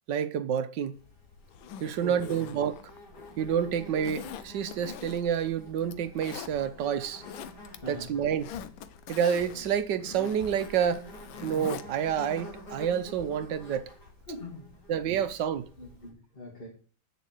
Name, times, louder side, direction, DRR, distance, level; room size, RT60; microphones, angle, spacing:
voice 1, 0.1-1.0 1.8-2.8 3.4-7.2 7.9-8.5 9.1-11.1 11.4-13.9 14.9-15.7, right 8 dB, 70° right, 1.4 m, -29 dB
Insect, 0.9-16.1, left 1 dB, 55° left, 3.7 m, -49 dB
Zipper (clothing), 1.5-3.4 4.0-5.4 5.8-6.5 7.0-7.8 8.1-11.9 12.2-12.3, left 9 dB, 90° left, 1.5 m, -43 dB
voice 2, 2.0-2.5 7.8-8.1 14.3-14.8 15.8-16.7, left 1 dB, 30° left, 2.3 m, -42 dB
8.3 x 6.9 x 8.1 m
omnidirectional pair, 2.1 m